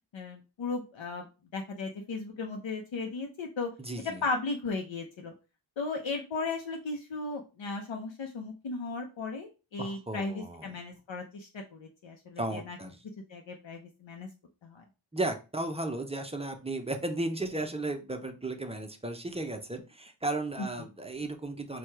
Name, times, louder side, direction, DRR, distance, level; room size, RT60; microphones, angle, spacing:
voice 1, 0.1-1.2 1.5-3.7 4.2-5.3 5.8-12.8 13.3-14.3 14.6-14.8, left 3 dB, 70° left, 2 dB, 0.8 m, -36 dB
voice 2, 3.8-4.2 9.8-10.7 12.4-13.0 15.1-21.8, right 2 dB, 15° right, 5 dB, 0.6 m, -35 dB
4.5 x 2.3 x 4.5 m, 0.30 s
wide cardioid pair, 105°, 48 cm